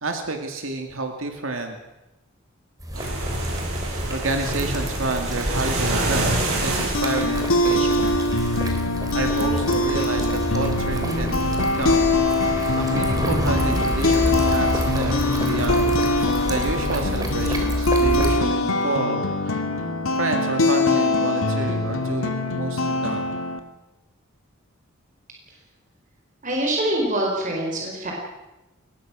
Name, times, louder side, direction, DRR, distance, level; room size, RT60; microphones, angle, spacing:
voice 1, 0.0-1.8 4.1-8.2 9.1-12.2 12.7-19.6 20.1-23.3, right 2 dB, 70° right, 4 dB, 2.3 m, -29 dB
sound 1, 2.8-18.4, equal, 20° right, 3.5 m, -28 dB
sound 2, 2.9-8.7, right 2 dB, 90° right, 7.9 m, -28 dB
sound 3, 6.7-23.6, left 2 dB, 85° left, 2.1 m, -23 dB
voice 2, 26.4-28.1, right 1 dB, 40° right, -1 dB, 4.9 m, -24 dB
22.5 x 19.5 x 6.2 m, 1.0 s
head